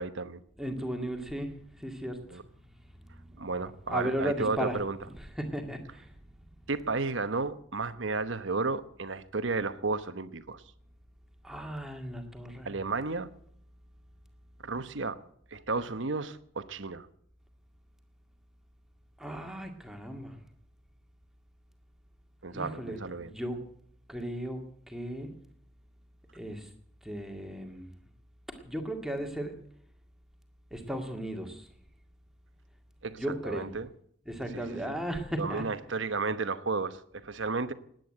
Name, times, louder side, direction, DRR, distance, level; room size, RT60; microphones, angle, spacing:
voice 1, 0.0-0.4 2.3-2.4 3.4-5.0 6.7-10.6 12.6-13.3 14.6-15.2 15.5-17.1 22.4-23.3 33.0-33.9 34.5-35.0 35.4-37.7, right 3 dB, 65° right, 1.1 m, -33 dB
voice 2, 0.6-2.4 3.9-4.8 5.2-6.1 11.4-12.7 19.2-20.4 22.5-23.6 24.1-25.3 26.3-26.7 27.0-27.9 28.6-29.5 30.7-31.7 33.1-33.7 34.3-35.7, right 1 dB, ahead, 2.0 m, -36 dB
20.0 x 9.2 x 7.8 m
head